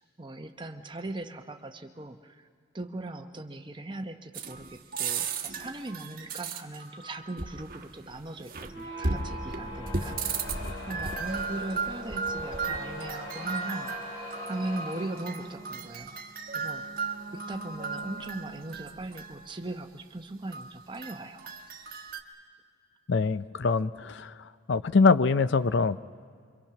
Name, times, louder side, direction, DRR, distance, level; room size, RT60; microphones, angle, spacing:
voice 1, 0.0-2.5 2.7-10.5 10.9-14.2 14.5-16.2 16.5-16.8 17.3-21.5, right 2 dB, 20° right, 6 dB, 0.8 m, -39 dB
sound 1, 4.3-19.4 20.5-22.2, right 4 dB, 45° right, 1.2 m, -36 dB
sound 2, 8.6-19.0, equal, 80° left, 7.1 m, -42 dB
voice 2, 23.1-26.0, left 4 dB, 55° left, 15 dB, 0.5 m, -24 dB
25.0 x 24.0 x 5.9 m, 2.1 s
head